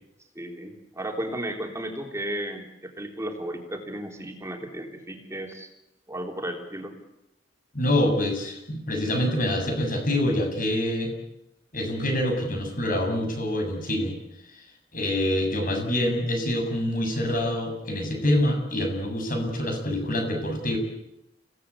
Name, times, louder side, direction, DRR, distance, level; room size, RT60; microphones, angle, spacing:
voice 1, 0.4-5.7 6.1-6.9, right 1 dB, 15° right, 2 dB, 3.7 m, -34 dB
voice 2, 7.7-11.1 11.7-14.2 14.5-14.6 14.9-20.8, left 1 dB, 50° left, 4 dB, 7.5 m, -26 dB
29.5 x 17.5 x 8.5 m, 0.86 s
head